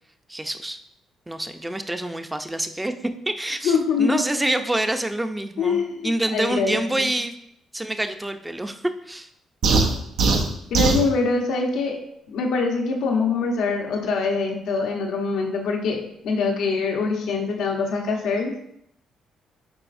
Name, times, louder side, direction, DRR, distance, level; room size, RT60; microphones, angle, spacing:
voice 1, 0.3-0.8 1.3-2.9 3.3-7.3 7.7-9.3, right 1 dB, 10° right, 7 dB, 0.6 m, -27 dB
voice 2, 3.6-4.2 5.6-7.1 10.7-12.0 12.3-18.6, left 4 dB, 85° left, 1 dB, 1.1 m, -24 dB
sound 1, 9.6-11.1, right 3 dB, 80° right, 0.8 m, -20 dB
9.6 x 4.1 x 2.6 m, 0.74 s
cardioid pair, 90°, 0 cm